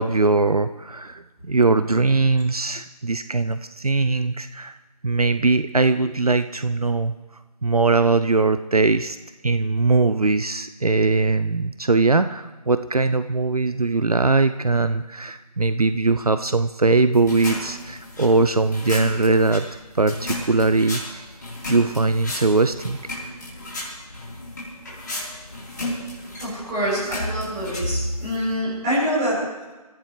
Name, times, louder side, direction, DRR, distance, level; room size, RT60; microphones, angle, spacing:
voice 1, 0.0-4.8 5.0-7.1 7.6-9.2 9.4-19.7 19.9-21.3 21.7-23.0, right 3 dB, 65° right, 11 dB, 0.7 m, -20 dB
sound 1, 17.1-28.6, left 1 dB, 30° left, 4.0 m, -34 dB
voice 2, 26.4-29.4, equal, 10° right, -11 dB, 4.9 m, -25 dB
26.0 x 15.0 x 3.3 m, 1.2 s
figure-of-eight pair, 170°, 20 cm